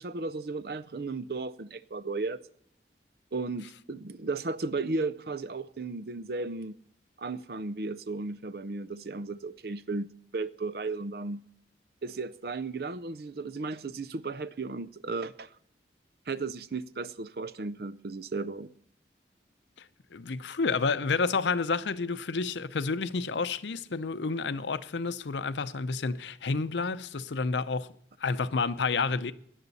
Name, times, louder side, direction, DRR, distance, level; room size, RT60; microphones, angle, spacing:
voice 1, 0.0-2.4 3.3-6.7 7.2-11.4 12.0-15.5 16.3-18.7, right 3 dB, 60° right, 0.6 m, -35 dB
voice 2, 20.1-27.9 28.2-29.3, left 4 dB, 85° left, 0.6 m, -30 dB
17.5 x 11.0 x 4.1 m
head